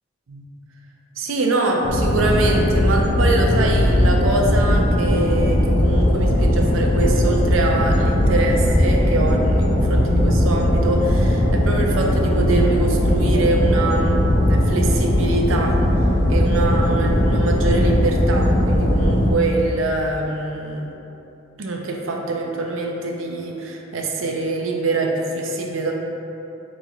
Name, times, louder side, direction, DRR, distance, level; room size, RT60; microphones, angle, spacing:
voice 1, 1.2-15.8 16.3-20.9 21.6-25.9, right 2 dB, 85° right, 0 dB, 0.5 m, -24 dB
sound 1, 1.8-19.3, left 1 dB, 40° left, 0.4 m, -18 dB
5.1 x 3.1 x 2.3 m, 2.9 s
head